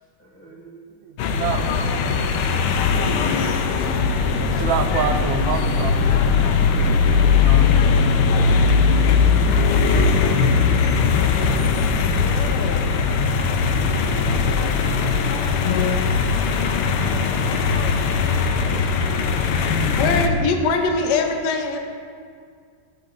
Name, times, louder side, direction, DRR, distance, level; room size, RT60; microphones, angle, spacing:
voice 1, 0.2-0.8 1.6-2.5 7.8-8.9, right 3 dB, 5° left, -5 dB, 1.6 m, -45 dB
voice 2, 1.0-1.6 4.3-8.2, right 7 dB, 75° right, 5 dB, 1.3 m, -29 dB
sound 1, 1.2-20.3, left 5 dB, 90° left, 1.6 m, -19 dB
voice 3, 12.1-12.9 18.5-18.9 20.0-21.8, left 4 dB, 65° left, 4 dB, 1.1 m, -23 dB
16.0 x 6.8 x 2.5 m, 2.1 s
omnidirectional pair, 2.4 m